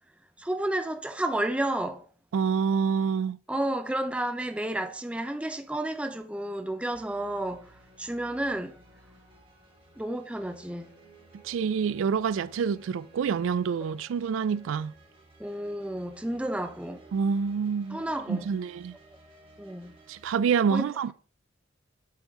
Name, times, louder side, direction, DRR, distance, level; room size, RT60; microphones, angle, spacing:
voice 1, 0.4-2.0 3.5-8.8 10.0-10.9 15.4-17.0 17.9-18.5 19.6-19.9 20.7-20.9, right 1 dB, 5° right, 0.4 m, -31 dB
voice 2, 2.3-3.4 11.4-14.9 17.1-18.0 18.3-18.9 20.1-21.1, right 6 dB, 75° right, 0.3 m, -27 dB
sound 1, 6.9-20.4, right 2 dB, 25° right, 1.5 m, -55 dB
7.6 x 3.6 x 4.6 m
head